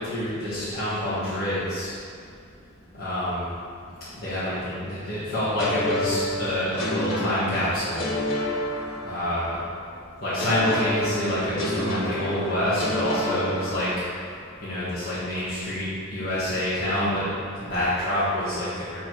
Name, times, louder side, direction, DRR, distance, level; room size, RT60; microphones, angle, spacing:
voice 1, 0.0-1.9 2.9-3.5 4.2-8.0 9.0-9.6 10.2-13.9 14.6-15.8 16.1-17.2 17.5-19.0, left 1 dB, 45° left, -13 dB, 1.7 m, -27 dB
sound 1, 5.6-9.5 10.4-14.2, left 1 dB, 70° left, 1.3 m, -29 dB
7.4 x 4.2 x 4.7 m, 2.3 s
head